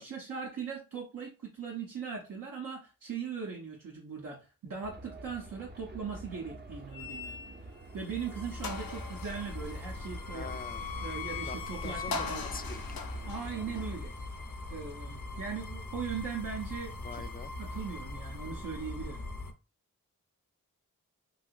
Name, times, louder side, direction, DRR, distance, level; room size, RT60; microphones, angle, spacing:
voice 1, 0.0-7.4 7.9-10.6 11.0-12.5 13.2-14.1 14.7-16.9 17.6-19.3, right 6 dB, 65° right, 0.8 m, -39 dB
sound 1, 4.8-13.9, right 1 dB, 30° right, 0.6 m, -47 dB
sound 2, 6.9-7.9 8.3-8.4 8.6-14.7, left 5 dB, 90° left, 0.5 m, -41 dB
sound 3, 7.7-19.5, left 2 dB, 60° left, 0.8 m, -42 dB
voice 2, 10.3-10.9 11.4-11.6 11.8-13.0 17.0-17.5, left 4 dB, 25° left, 0.4 m, -44 dB
3.2 x 2.8 x 2.4 m
cardioid pair, 45°, 34 cm